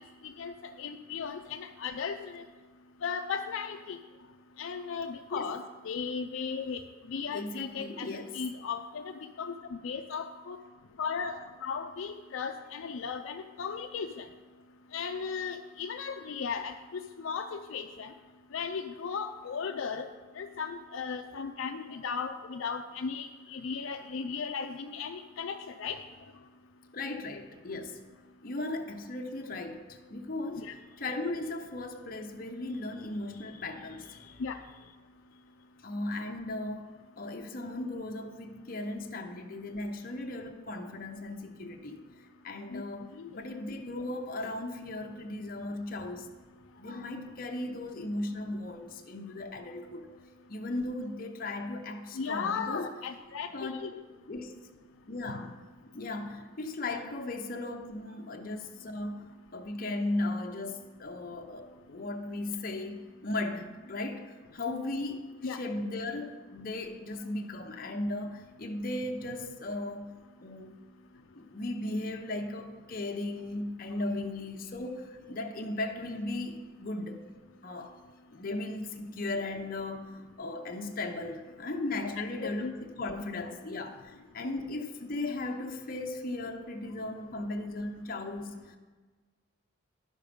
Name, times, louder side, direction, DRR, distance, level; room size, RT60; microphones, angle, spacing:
voice 1, 0.2-2.4 3.0-4.0 4.6-6.8 7.1-10.6 11.0-14.3 14.9-18.1 18.5-20.1 20.4-26.0 30.6-30.7 34.4-34.6 42.7-42.8 43.2-43.3 52.2-54.0 65.4-65.6 82.0-82.7 83.4-83.5, left 6 dB, 75° left, 5 dB, 0.4 m, -36 dB
voice 2, 7.3-8.4 26.9-28.0 28.4-34.4 35.8-36.9 37.2-42.0 42.4-46.3 46.8-50.1 50.5-52.9 53.5-53.8 54.3-54.5 55.1-55.6 55.9-70.8 71.3-77.2 77.6-77.9 78.3-80.1 80.4-88.5, left 2 dB, 45° left, 3 dB, 0.8 m, -37 dB
11.0 x 6.5 x 5.1 m, 1.4 s
head